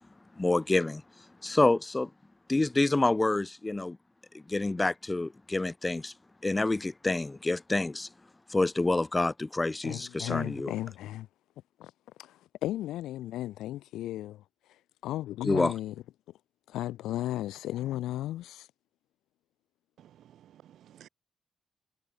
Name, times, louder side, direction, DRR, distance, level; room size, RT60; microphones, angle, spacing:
voice 1, 0.4-1.0 1.4-2.1 2.5-4.0 4.3-6.1 6.4-8.1 8.5-10.7 15.4-15.7, left 2 dB, 15° left, 0.6 m, -27 dB
voice 2, 9.8-11.3 11.8-11.9 12.2-15.9 16.7-18.7, left 14 dB, 85° left, 0.5 m, -35 dB
voice 3, 20.0-21.1, right 11 dB, 75° right, 0.4 m, -55 dB
cardioid pair, 90°, 0 cm